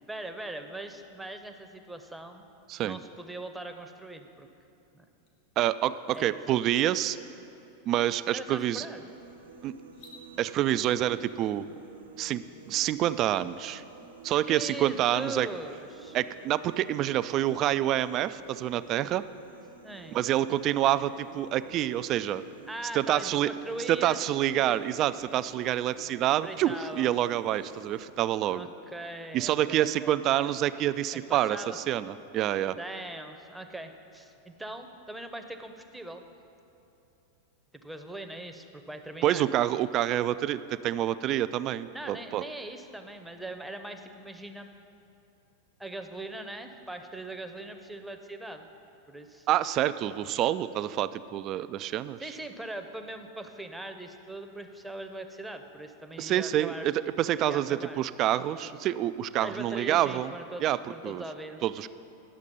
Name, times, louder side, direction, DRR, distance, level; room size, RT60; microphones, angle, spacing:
voice 1, 0.1-2.4 2.8-4.5 4.9-5.0 6.1-6.3 8.3-9.0 14.5-16.2 19.8-20.2 22.7-24.2 24.5-24.8 26.4-27.1 28.5-30.1 31.1-31.8 32.8-36.2 37.8-39.4 41.9-44.7 45.8-48.7 49.1-49.5 52.2-56.9 57.4-58.0 59.4-61.6, right 1 dB, 5° right, 6 dB, 0.7 m, -40 dB
sound 1, 5.3-5.4 5.8-6.2 7.8-7.9 8.4-8.7 9.8-10.2, left 3 dB, 60° left, 1.4 m, -54 dB
voice 2, 5.6-7.2 7.9-8.9 9.6-9.7 10.4-11.6 12.2-13.8 14.2-15.5 16.1-19.2 20.1-22.4 22.9-23.5 23.9-28.7 29.3-32.8 39.2-42.4 49.5-52.4 56.2-60.3 60.6-60.8 61.0-61.2 61.6-61.9, right 12 dB, 40° right, 14 dB, 0.3 m, -27 dB
sound 2, 9.1-28.1, right 4 dB, 90° right, 1.1 m, -51 dB
9.9 x 6.5 x 5.3 m, 2.8 s
hypercardioid pair, 95°, 0 cm